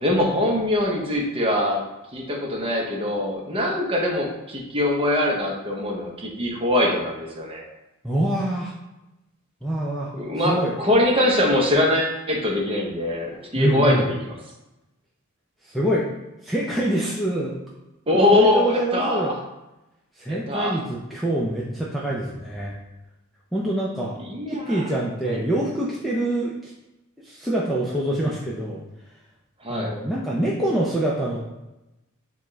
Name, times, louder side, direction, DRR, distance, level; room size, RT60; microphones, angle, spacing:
voice 1, 0.0-1.8 2.1-7.6 10.1-14.3 18.1-19.3 20.3-20.7 24.2-24.8 25.3-25.4 29.6-29.9, left 1 dB, 25° right, -1 dB, 0.8 m, -22 dB
voice 2, 8.0-8.7 9.6-10.1 10.4-10.7 13.6-14.0 15.6-16.1 16.4-17.5 18.3-19.3 20.2-22.7 23.5-24.2 24.5-26.7 27.2-28.8 29.7-31.4, right 1 dB, ahead, -6 dB, 0.4 m, -25 dB
7.0 x 2.4 x 3.1 m, 0.97 s
head